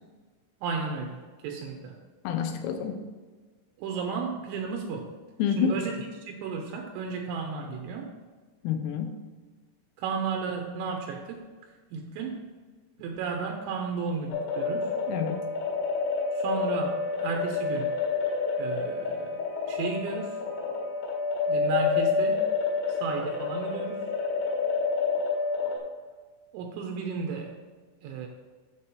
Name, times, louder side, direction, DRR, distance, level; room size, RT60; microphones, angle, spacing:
voice 1, 0.6-2.0 3.8-5.1 5.6-8.1 10.0-11.4 11.9-12.4 13.0-14.9 16.3-17.9 18.6-20.4 21.5-22.5 23.0-24.0 26.5-27.5 28.0-28.3, right 5 dB, 85° right, 2 dB, 2.9 m, -33 dB
voice 2, 2.2-3.1 5.4-5.8 8.6-9.2 15.1-15.4, left 7 dB, 90° left, 5 dB, 3.5 m, -28 dB
sound 1, 14.3-25.8, left 4 dB, 70° left, 3.7 m, -28 dB
8.5 x 6.7 x 4.2 m, 1.4 s
omnidirectional pair, 5.9 m